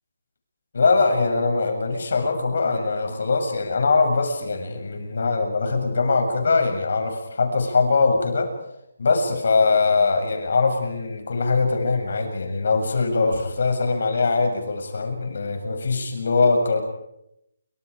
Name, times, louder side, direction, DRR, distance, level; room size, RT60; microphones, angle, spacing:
voice 1, 0.7-8.5 9.0-16.8, left 4 dB, 60° left, 4 dB, 7.1 m, -22 dB
29.0 x 25.5 x 5.1 m, 0.82 s
hypercardioid pair, 165°, 0 cm